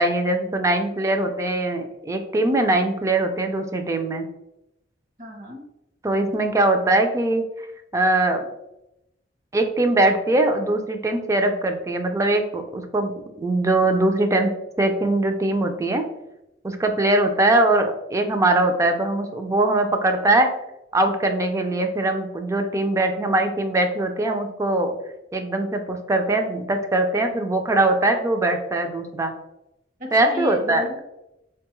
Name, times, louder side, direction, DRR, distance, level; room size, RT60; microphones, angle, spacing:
voice 1, 0.0-4.2 6.0-7.7 7.9-8.4 9.5-13.1 13.4-16.0 16.6-20.5 20.9-24.9 25.3-29.3 30.1-30.8, right 2 dB, 15° right, 6 dB, 0.3 m, -21 dB
voice 2, 5.2-5.7 30.0-31.0, left 1 dB, 50° right, 2 dB, 0.7 m, -33 dB
4.1 x 2.2 x 2.9 m, 0.88 s
head